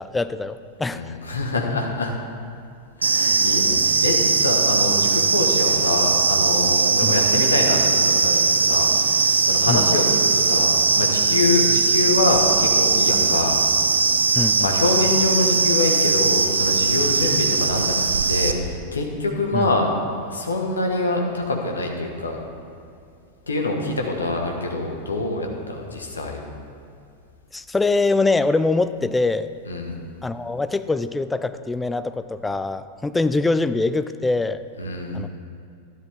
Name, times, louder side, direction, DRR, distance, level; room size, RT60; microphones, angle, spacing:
voice 1, 0.0-1.1 7.0-7.2 9.7-9.9 14.4-14.6 19.5-19.7 27.5-29.5 30.2-34.6 35.1-35.3, left 3 dB, 10° left, 12 dB, 0.4 m, -23 dB
voice 2, 0.9-2.1 3.0-13.5 13.9-14.1 14.6-17.9 18.2-19.9 20.2-22.4 23.5-26.4 29.7-29.9 34.8-35.2, left 2 dB, 75° left, 1 dB, 1.4 m, -25 dB
sound 1, 3.0-18.5, right 4 dB, 75° right, 0.5 m, -19 dB
12.5 x 11.0 x 3.6 m, 2.4 s
figure-of-eight pair, 90°, 0 cm